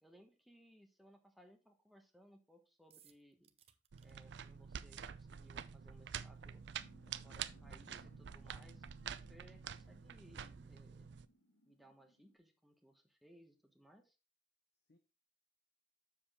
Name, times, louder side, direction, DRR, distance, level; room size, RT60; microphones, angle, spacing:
voice 1, 0.0-3.5 4.0-6.6 7.0-8.8 9.2-11.1 11.6-14.2, equal, ahead, 4 dB, 1.3 m, -64 dB
sound 1, 2.9-4.1, right 10 dB, 35° right, 0.7 m, -66 dB
sound 2, 3.9-11.2, right 8 dB, 70° right, 0.5 m, -48 dB
sound 3, 6.8-12.4, equal, 80° left, 1.8 m, -67 dB
voice 2, 7.4-8.1 14.9-15.0, left 3 dB, 60° left, 7 dB, 0.8 m, -71 dB
7.3 x 7.0 x 3.6 m, 0.28 s
head